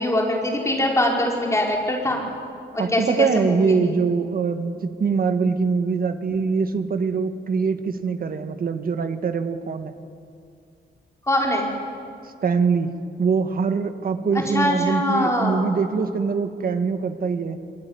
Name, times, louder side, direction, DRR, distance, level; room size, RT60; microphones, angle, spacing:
voice 1, 0.0-2.2 2.7-3.9 11.3-11.7 14.3-15.6, left 1 dB, 15° left, -1 dB, 4.8 m, -23 dB
voice 2, 2.8-9.9 12.4-12.9 13.2-17.6, right 5 dB, 50° right, 8 dB, 1.7 m, -23 dB
26.0 x 21.5 x 9.7 m, 2.4 s
wide cardioid pair, 160°, 19 cm